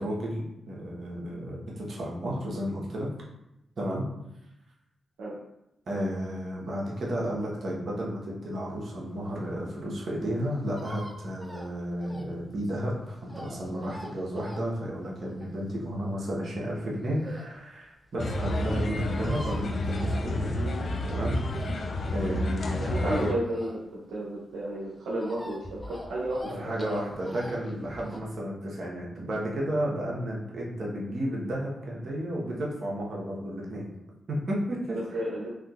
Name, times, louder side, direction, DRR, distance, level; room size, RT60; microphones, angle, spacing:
voice 1, 0.0-3.1 3.8-4.0 5.9-20.6 21.0-21.4 22.1-23.3 26.6-33.9 34.3-35.2, equal, 60° right, -4 dB, 1.0 m, -32 dB
sound 1, 8.9-17.6 18.0-18.1 18.3-18.4 18.6-18.7 18.9-20.8 21.1-24.1 24.4-28.2, equal, 5° left, 0.6 m, -45 dB
sound 2, 18.2-23.3, left 1 dB, 60° left, 0.3 m, -30 dB
voice 2, 22.8-27.0 34.9-35.5, right 1 dB, 85° right, -7 dB, 0.6 m, -33 dB
3.6 x 2.7 x 2.4 m, 0.87 s
supercardioid pair, 50°, 0 cm